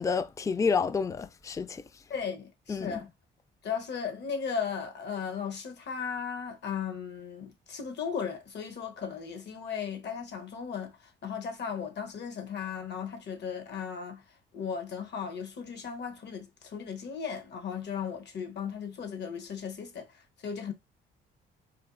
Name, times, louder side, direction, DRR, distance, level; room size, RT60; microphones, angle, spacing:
voice 1, 0.0-1.8 2.7-3.0, left 5 dB, 15° left, 0.3 m, -29 dB
voice 2, 2.1-3.1 3.6-14.2 14.5-20.7, left 6 dB, 60° left, 1.0 m, -36 dB
4.3 x 2.6 x 2.5 m
cardioid pair, 90°, 20 cm